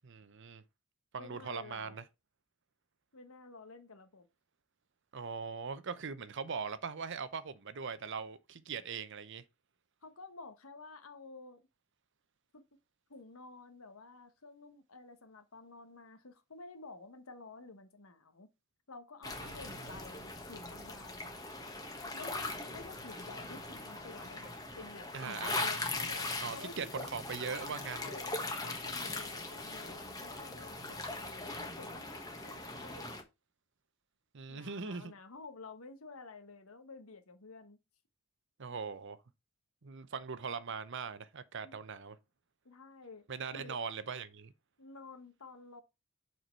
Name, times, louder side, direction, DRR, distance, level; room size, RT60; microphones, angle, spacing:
voice 1, 0.0-0.6 1.1-2.0 5.1-9.4 19.4-19.9 25.1-25.6 26.4-28.1 34.3-35.1 38.6-39.2 39.8-42.2 43.3-44.5, right 5 dB, 60° right, 0.7 m, -41 dB
voice 2, 1.2-2.0 3.1-4.3 10.0-11.6 12.5-12.7 13.1-18.5 18.9-21.4 22.1-26.2 26.5-27.1 27.8-33.1 34.5-37.8 41.6-41.8 42.6-43.3 43.5-43.8 44.8-45.8, left 3 dB, 80° left, 1.3 m, -51 dB
sound 1, 19.2-33.2, left 2 dB, 15° left, 1.3 m, -40 dB
6.7 x 4.7 x 4.5 m
head